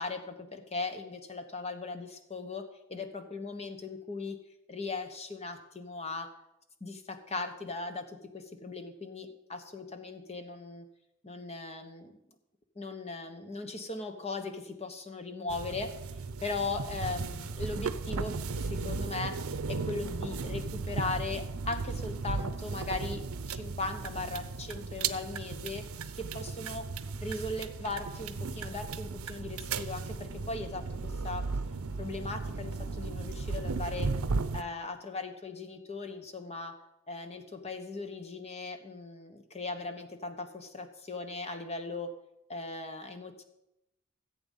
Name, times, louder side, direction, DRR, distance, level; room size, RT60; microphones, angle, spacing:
voice 1, 0.0-2.6 2.9-4.4 4.7-6.3 6.8-10.8 11.2-12.2 12.7-15.9 16.4-25.8 26.1-26.9 27.2-31.4 32.0-34.1 34.5-36.7 37.1-42.1 42.5-43.4, left 3 dB, 30° left, 7 dB, 1.2 m, -38 dB
sound 1, 15.5-34.6, right 4 dB, 75° right, 0.6 m, -36 dB
15.0 x 8.0 x 5.5 m, 0.86 s
head